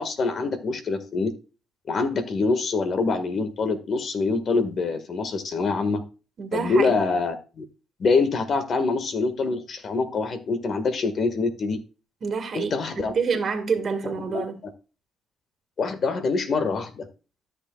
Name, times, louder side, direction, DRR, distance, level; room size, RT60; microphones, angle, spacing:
voice 1, 0.0-1.3 1.9-6.0 6.5-7.6 8.0-11.8 12.5-13.2 14.0-14.5 15.8-17.1, left 4 dB, 55° left, 1.6 m, -25 dB
voice 2, 6.4-7.0 12.2-14.6, right 5 dB, 50° right, 1.7 m, -27 dB
13.5 x 6.5 x 2.3 m
cardioid pair, 90°, 0 cm